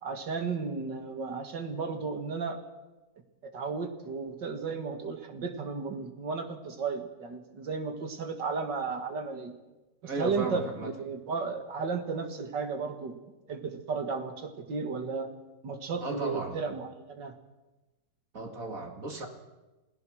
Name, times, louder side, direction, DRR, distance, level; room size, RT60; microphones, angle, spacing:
voice 1, 0.0-2.6 3.5-9.5 10.2-13.1 13.5-15.3 15.6-17.4, right 4 dB, 70° right, 7 dB, 2.6 m, -34 dB
voice 2, 10.0-10.9 16.0-16.6 18.3-19.3, right 2 dB, 45° right, 4 dB, 2.6 m, -35 dB
28.0 x 17.0 x 6.3 m, 1.1 s
omnidirectional pair, 2.0 m